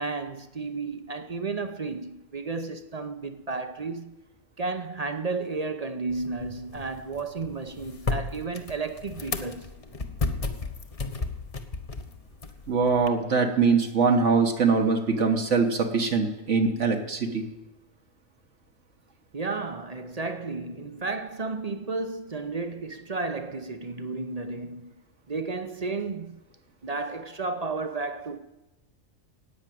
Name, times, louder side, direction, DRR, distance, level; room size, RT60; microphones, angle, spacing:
voice 1, 0.0-4.2 4.6-9.7 19.3-24.9 25.3-26.4 26.8-28.4, right 3 dB, 35° right, 0.7 m, -33 dB
sound 1, 6.1-13.1, left 3 dB, 30° left, 0.9 m, -34 dB
voice 2, 12.7-17.5, right 4 dB, 65° right, 1.6 m, -23 dB
14.0 x 8.9 x 9.2 m
omnidirectional pair, 1.3 m